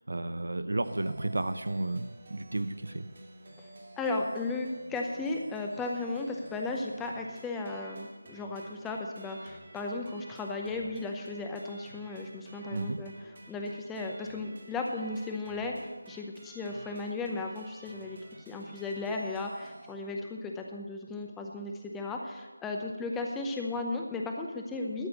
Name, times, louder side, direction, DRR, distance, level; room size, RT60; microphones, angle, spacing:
voice 1, 0.0-3.1 12.7-13.0, right 2 dB, 65° right, 11 dB, 0.8 m, -32 dB
sound 1, 0.8-20.0, right 1 dB, 45° right, 2.2 m, -51 dB
voice 2, 4.0-13.1 13.5-15.7 16.1-18.2 18.5-25.1, left 3 dB, 5° left, 1 dB, 0.7 m, -35 dB
13.0 x 6.8 x 6.9 m, 1.2 s
figure-of-eight pair, 160°, 0 cm